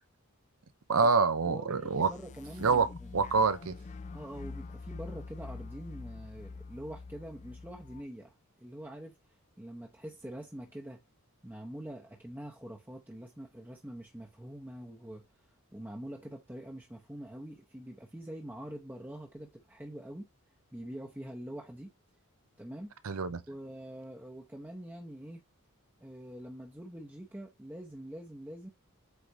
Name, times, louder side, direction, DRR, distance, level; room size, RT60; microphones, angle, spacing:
voice 1, 0.9-2.1 2.6-2.9 3.1-3.7 23.0-23.4, right 4 dB, 75° right, 0.7 m, -26 dB
voice 2, 1.4-3.1 4.1-9.2 9.6-11.0 11.4-15.2 15.7-20.3 20.7-21.9 22.6-22.9 23.5-25.4 26.0-28.7, right 1 dB, 10° right, 0.8 m, -45 dB
sound 1, 1.8-8.0, left 3 dB, 30° left, 0.4 m, -45 dB
8.2 x 4.0 x 3.0 m
head